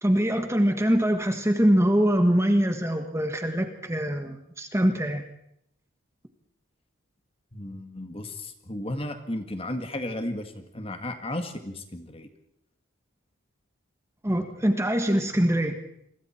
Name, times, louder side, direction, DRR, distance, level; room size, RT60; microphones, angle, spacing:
voice 1, 0.0-5.2 14.2-15.8, equal, 15° right, 6 dB, 1.5 m, -23 dB
voice 2, 7.5-12.3, left 1 dB, 25° left, 7 dB, 1.8 m, -34 dB
28.5 x 22.5 x 4.5 m, 0.76 s
head